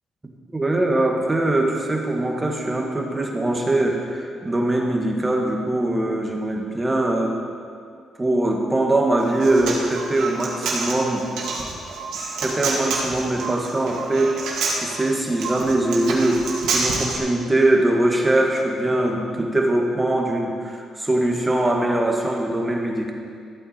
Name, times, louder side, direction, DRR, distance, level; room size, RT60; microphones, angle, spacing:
voice 1, 0.5-7.4 8.2-11.3 12.4-16.5 16.7-23.1, right 1 dB, 15° right, 1 dB, 1.7 m, -22 dB
Human voice, 9.2-17.2, right 4 dB, 80° right, 2.1 m, -28 dB
14.0 x 8.4 x 4.4 m, 2.2 s
cardioid pair, 90°, 0 cm